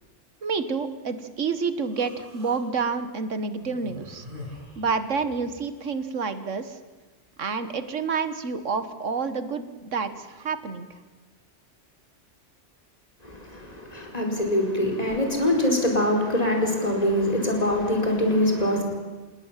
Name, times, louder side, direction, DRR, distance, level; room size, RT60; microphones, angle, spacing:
voice 1, 0.4-4.3 4.8-6.8 7.4-10.9, right 5 dB, 90° right, 11 dB, 1.8 m, -29 dB
Human voice, 1.9-2.6 3.5-5.5, left 2 dB, 45° right, 6.8 m, -43 dB
voice 2, 13.2-18.8, left 1 dB, 30° left, 1 dB, 5.0 m, -24 dB
28.0 x 19.5 x 7.5 m, 1.3 s
omnidirectional pair, 1.2 m